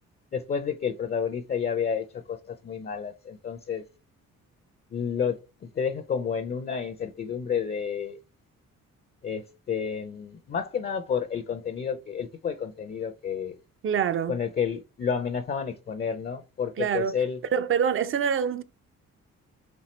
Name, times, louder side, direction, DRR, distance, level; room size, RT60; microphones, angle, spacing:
voice 1, 0.3-3.8 4.9-8.2 9.2-13.6 14.3-17.4, left 7 dB, 30° left, 0.5 m, -30 dB
voice 2, 13.8-14.4 16.8-17.1 17.5-18.6, right 7 dB, 45° right, 0.5 m, -25 dB
4.3 x 3.6 x 3.0 m
cardioid pair, 90°, 30 cm